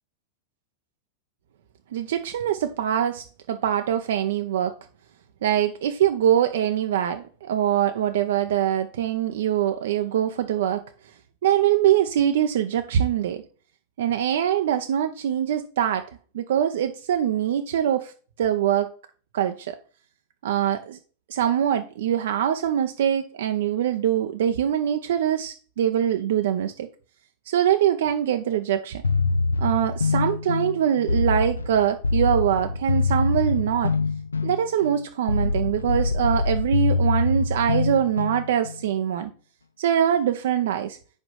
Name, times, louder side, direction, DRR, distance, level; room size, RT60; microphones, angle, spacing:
voice 1, 1.9-4.8 5.4-10.8 11.4-13.4 14.0-16.1 16.3-18.1 18.4-18.9 19.3-19.8 20.4-21.0 21.3-26.9 27.5-29.0 29.6-33.9 34.4-39.3 39.8-41.0, right 10 dB, 60° right, 0.5 m, -23 dB
sound 1, 29.0-38.8, left 3 dB, 75° left, 0.5 m, -24 dB
5.3 x 5.0 x 5.4 m
figure-of-eight pair, 90°, 0 cm